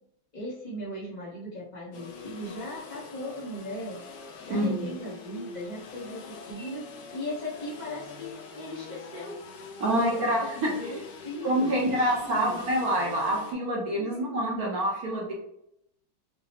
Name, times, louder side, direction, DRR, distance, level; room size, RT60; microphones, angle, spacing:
voice 1, 0.3-4.0 4.4-6.8 7.1-9.4 9.8-10.3 10.5-12.7 13.9-14.4, left 1 dB, 50° left, -7 dB, 0.5 m, -38 dB
sound 1, 1.9-13.5, left 4 dB, 70° left, 1.2 m, -44 dB
voice 2, 9.8-10.4 11.4-15.3, right 1 dB, 65° right, -2 dB, 0.9 m, -26 dB
4.9 x 2.0 x 2.8 m, 0.76 s
omnidirectional pair, 2.3 m